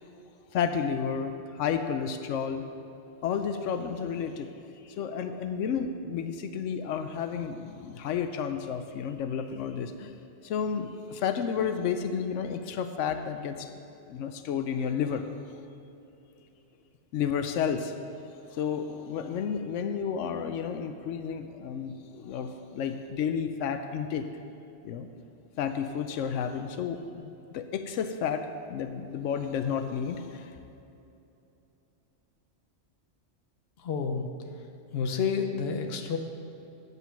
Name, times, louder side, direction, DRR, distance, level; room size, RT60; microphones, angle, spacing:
voice 1, 0.5-2.6 3.2-10.1 10.4-13.7 14.1-15.3 17.1-18.0 18.5-24.2 24.8-25.1 25.6-30.5, left 7 dB, 90° left, 8 dB, 0.9 m, -31 dB
voice 2, 33.8-34.3 34.9-36.2, left 6 dB, 60° left, 5 dB, 1.0 m, -29 dB
9.3 x 8.2 x 5.7 m, 2.8 s
omnidirectional pair, 1.2 m